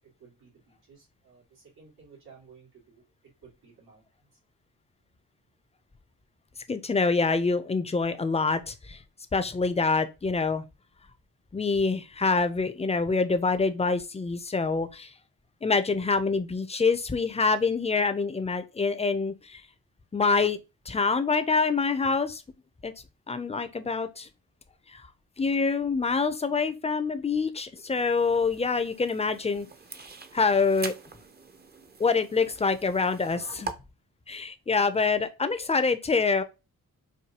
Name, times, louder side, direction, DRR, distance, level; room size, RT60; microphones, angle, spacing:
voice 1, 0.2-3.0 3.4-4.0, right 5 dB, 85° right, 2.2 m, -55 dB
voice 2, 6.7-9.0 9.3-10.6 11.5-15.1 15.6-19.6 20.1-20.6 20.9-22.4 22.8-22.9 23.3-24.3 24.9-25.1 25.4-29.7 30.3-30.9 32.0-33.7 34.3-36.4, left 4 dB, 15° left, 0.5 m, -26 dB
sound 1, 27.9-33.7, right 4 dB, 25° right, 0.6 m, -43 dB
4.7 x 2.2 x 2.8 m
cardioid pair, 50°, 37 cm